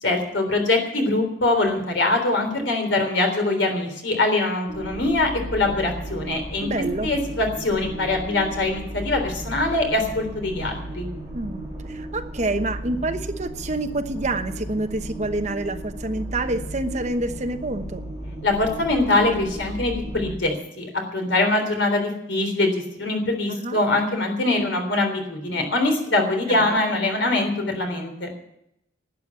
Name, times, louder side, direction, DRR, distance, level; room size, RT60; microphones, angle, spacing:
voice 1, 0.0-6.7 7.0-11.1 18.4-28.3, left 2 dB, 70° left, 4 dB, 3.5 m, -23 dB
sound 1, 4.7-20.4, right 1 dB, 15° right, 3.8 m, -35 dB
voice 2, 6.6-7.1 11.3-18.0 23.5-23.8 26.5-26.8, right 2 dB, 35° right, 7 dB, 1.1 m, -28 dB
12.0 x 9.2 x 9.5 m, 0.79 s
head